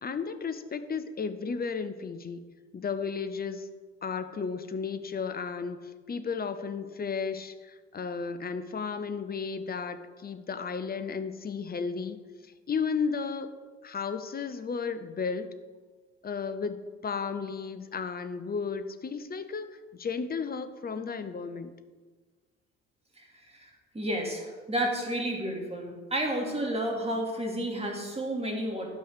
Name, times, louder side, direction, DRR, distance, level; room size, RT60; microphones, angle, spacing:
voice 1, 0.0-2.4 2.7-3.7 4.0-12.2 12.7-13.5 13.8-15.5 16.2-16.8 17.0-19.7 19.9-21.7, left 5 dB, 25° left, 9 dB, 0.9 m, -33 dB
voice 2, 23.2-28.9, right 1 dB, 15° right, 1 dB, 2.6 m, -31 dB
12.5 x 5.4 x 6.5 m, 1.4 s
figure-of-eight pair, 55°, 36 cm